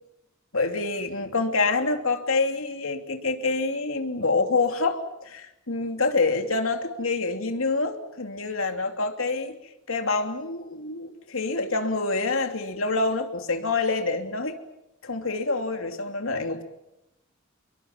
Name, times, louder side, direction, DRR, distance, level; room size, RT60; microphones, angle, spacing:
voice 1, 0.5-9.5 9.9-14.5 15.0-16.6, left 3 dB, 85° left, 5 dB, 3.1 m, -26 dB
29.0 x 23.0 x 7.6 m, 0.87 s
head